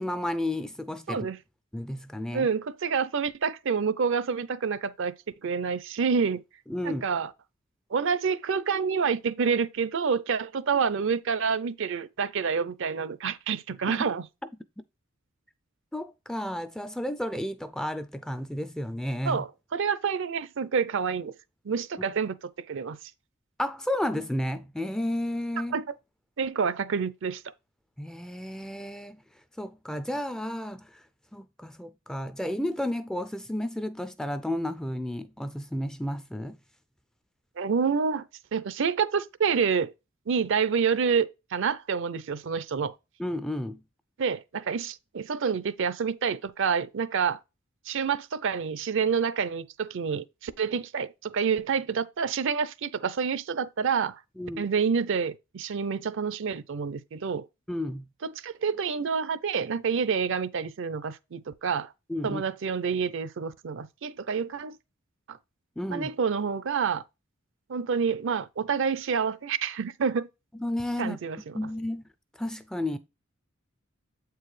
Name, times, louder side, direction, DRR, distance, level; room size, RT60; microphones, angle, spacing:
voice 1, 0.0-1.3 1.7-2.5 6.7-7.0 15.9-19.4 23.6-25.7 28.0-29.2 29.6-31.0 31.3-36.6 43.2-43.8 54.4-54.7 57.7-58.0 62.1-62.4 65.8-66.1 70.6-71.2 71.5-72.0 72.4-73.0, left 1 dB, 5° left, 0.3 m, -32 dB
voice 2, 1.1-1.4 2.3-5.1 5.4-6.4 6.8-7.3 7.9-14.2 19.3-21.3 21.6-22.4 22.7-23.0 25.7-25.8 26.4-27.4 37.6-38.3 38.5-39.9 40.3-42.9 44.2-47.4 47.9-54.2 54.6-57.5 58.2-61.9 62.2-64.8 65.3-65.4 65.9-67.0 67.7-70.3 71.0-71.7, right 6 dB, 65° right, 0.5 m, -28 dB
7.9 x 4.6 x 3.2 m
head